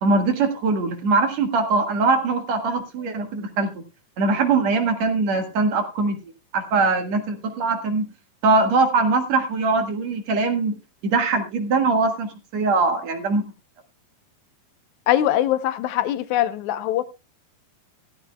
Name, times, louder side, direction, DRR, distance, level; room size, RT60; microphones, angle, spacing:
voice 1, 0.0-3.7 4.2-6.2 6.5-8.1 8.4-10.8 11.0-13.4, right 3 dB, 55° right, 2.5 m, -21 dB
voice 2, 15.1-17.0, left 12 dB, 80° left, 1.7 m, -22 dB
17.0 x 13.0 x 2.3 m
omnidirectional pair, 4.5 m